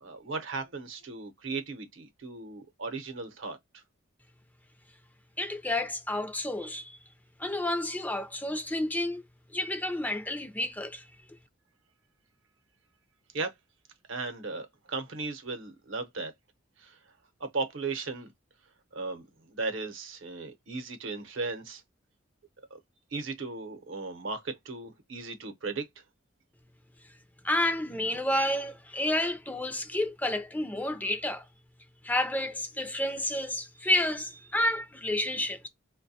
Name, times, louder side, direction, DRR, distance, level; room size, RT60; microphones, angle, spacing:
voice 1, 0.0-3.6 13.3-13.5 14.1-16.3 16.8-17.0 17.4-18.3 18.9-19.2 19.5-21.8 22.7-22.8 23.1-25.9, right 3 dB, 70° right, 0.8 m, -36 dB
voice 2, 5.4-6.9 7.4-9.2 9.5-11.0 27.4-31.4 32.0-35.7, left 1 dB, 10° left, 0.4 m, -30 dB
4.6 x 2.2 x 2.6 m
head